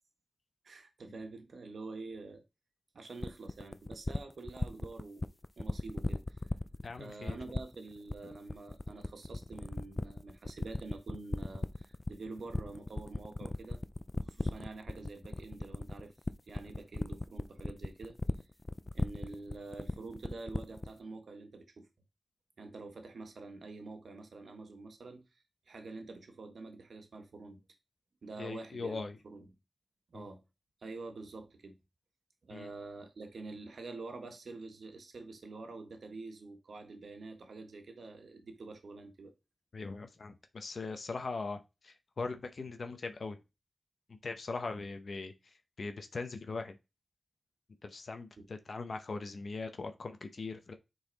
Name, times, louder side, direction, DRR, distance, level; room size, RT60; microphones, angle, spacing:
voice 1, 0.6-2.4 2.9-5.2 5.6-6.4 6.9-13.8 14.2-16.1 16.5-18.2 18.9-21.9 22.6-25.2 25.7-27.6 28.2-29.5 30.1-30.4 30.8-31.8 32.4-39.3 48.4-48.5, right 3 dB, 85° right, 1.4 m, -47 dB
sound 1, 3.2-21.0, left 2 dB, 30° left, 0.4 m, -36 dB
voice 2, 6.8-7.6 28.4-29.2 30.1-30.3 32.5-32.7 39.7-43.4 44.1-46.8 47.8-50.7, left 4 dB, 70° left, 0.8 m, -41 dB
6.9 x 4.0 x 4.0 m
cardioid pair, 55°, 0 cm